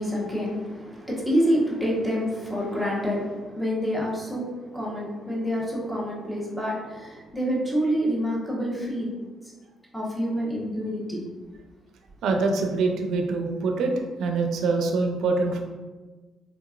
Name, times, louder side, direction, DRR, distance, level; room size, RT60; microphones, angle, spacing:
voice 1, 0.0-9.1 9.9-11.2 12.3-12.4, equal, ahead, -5 dB, 1.1 m, -27 dB
voice 2, 12.2-13.9 14.2-15.6, right 3 dB, 75° right, 3 dB, 0.5 m, -24 dB
3.6 x 2.8 x 2.4 m, 1.3 s
cardioid pair, 90°, 0 cm